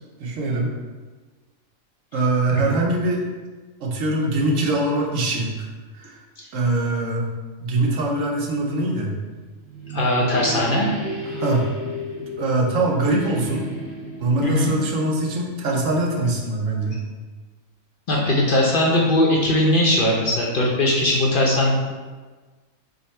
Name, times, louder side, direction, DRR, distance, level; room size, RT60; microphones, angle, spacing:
voice 1, 0.2-0.8 2.1-3.2 3.8-5.7 5.9-6.2 6.5-7.2 7.6-9.1 11.2-11.7 12.4-13.7 14.2-17.0, right 2 dB, 80° right, -1 dB, 1.1 m, -23 dB
sound 1, 9.3-16.0, left 1 dB, 20° right, 1.1 m, -33 dB
voice 2, 9.9-10.9 14.4-14.7 18.1-21.7, left 1 dB, 50° left, -3 dB, 0.7 m, -19 dB
5.2 x 2.1 x 4.1 m, 1.3 s
omnidirectional pair, 1.3 m